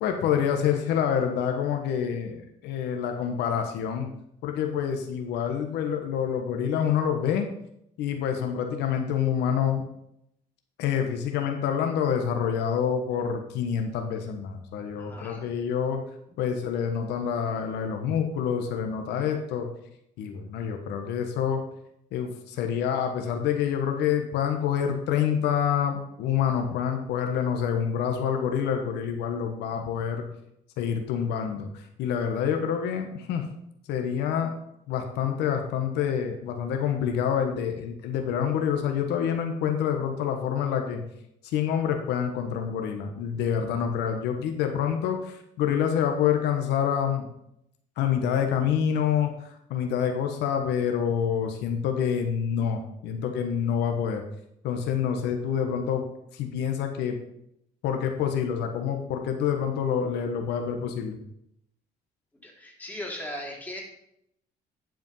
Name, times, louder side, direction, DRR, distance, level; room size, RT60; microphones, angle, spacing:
voice 1, 0.0-4.1 4.4-7.5 8.0-9.8 10.8-16.0 16.4-19.7 20.2-21.6 22.1-30.2 30.8-33.4 33.9-34.5 34.9-41.0 41.4-47.3 48.0-54.2 54.6-56.1 56.3-57.2 57.8-61.2, left 8 dB, 85° left, 4 dB, 1.2 m, -27 dB
voice 2, 15.0-15.4 62.4-63.8, left 1 dB, 10° left, -2 dB, 2.8 m, -38 dB
10.5 x 5.2 x 5.4 m, 0.77 s
cardioid pair, 110°, 17 cm